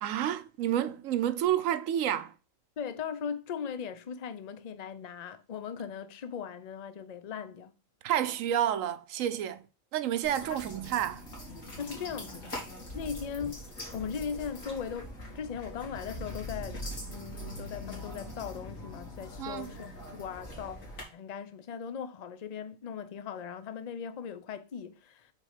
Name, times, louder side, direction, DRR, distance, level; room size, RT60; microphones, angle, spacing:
voice 1, 0.0-2.3 8.0-9.6 9.9-11.3 19.4-19.7, right 11 dB, 80° right, 1.1 m, -30 dB
voice 2, 2.8-7.8 11.8-12.6 12.9-13.7 13.9-16.8 17.1-20.8 21.1-25.3, left 7 dB, 40° left, 0.6 m, -39 dB
sound 1, 10.2-21.0, left 1 dB, 80° left, 3.0 m, -42 dB
6.3 x 4.2 x 4.9 m
omnidirectional pair, 1.4 m